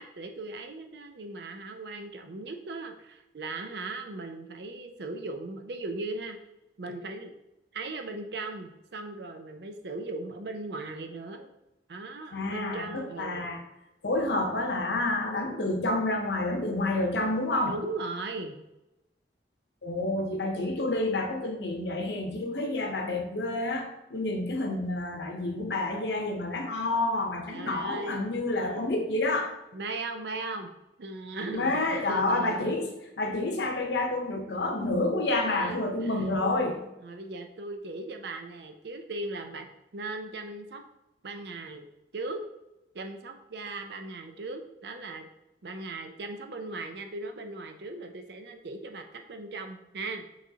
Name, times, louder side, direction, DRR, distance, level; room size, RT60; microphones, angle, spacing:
voice 1, 0.0-6.4 6.8-7.3 7.7-11.5 11.9-13.5 17.6-18.6 27.5-28.3 28.6-29.0 29.7-30.7 31.0-32.8 35.4-36.3 37.0-40.8 41.2-41.9 42.1-42.4 42.9-45.3 45.6-50.3, right 2 dB, 65° right, 6 dB, 0.5 m, -38 dB
voice 2, 12.3-13.6 14.0-17.8 19.8-29.6 31.5-36.8, left 2 dB, 70° left, 3 dB, 0.8 m, -29 dB
6.0 x 3.1 x 2.8 m, 0.94 s
head